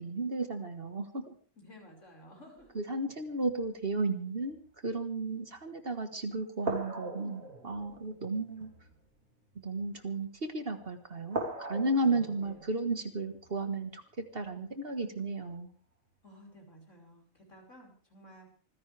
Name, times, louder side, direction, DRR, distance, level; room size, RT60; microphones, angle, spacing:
voice 1, 0.0-1.3 2.7-8.7 9.5-15.7, right 2 dB, 45° right, 7 dB, 1.7 m, -34 dB
voice 2, 1.6-2.7 12.1-12.6 16.2-18.5, equal, 65° left, 0 dB, 5.8 m, -54 dB
sound 1, 2.6-3.9 4.4-4.7 5.5-5.7 6.6-10.2 10.7-10.9 11.3-14.8 15.4-15.6, right 2 dB, 80° right, 3.6 m, -42 dB
25.5 x 15.5 x 3.4 m, 0.40 s
omnidirectional pair, 1.4 m